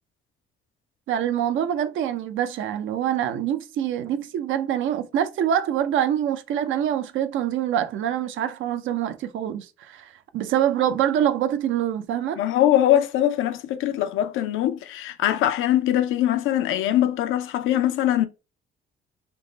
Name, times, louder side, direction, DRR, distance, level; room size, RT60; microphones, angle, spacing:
voice 1, 1.1-12.4, right 10 dB, 80° right, 0.5 m, -25 dB
voice 2, 12.4-18.3, left 12 dB, 90° left, 0.5 m, -22 dB
3.4 x 2.0 x 3.9 m
cardioid pair, 90°, 20 cm